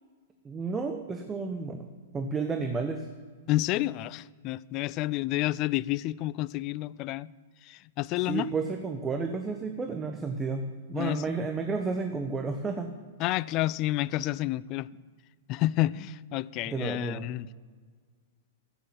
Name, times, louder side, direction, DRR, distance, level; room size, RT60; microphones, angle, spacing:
voice 1, 0.4-1.9 2.1-3.1 8.2-10.6 10.9-12.9 16.7-17.3, right 4 dB, 15° right, 1.0 m, -31 dB
voice 2, 3.5-7.3 7.6-8.5 10.9-11.2 13.2-14.9 15.5-17.5, left 16 dB, 40° left, 0.3 m, -29 dB
14.0 x 8.7 x 7.5 m
figure-of-eight pair, 105°, 0 cm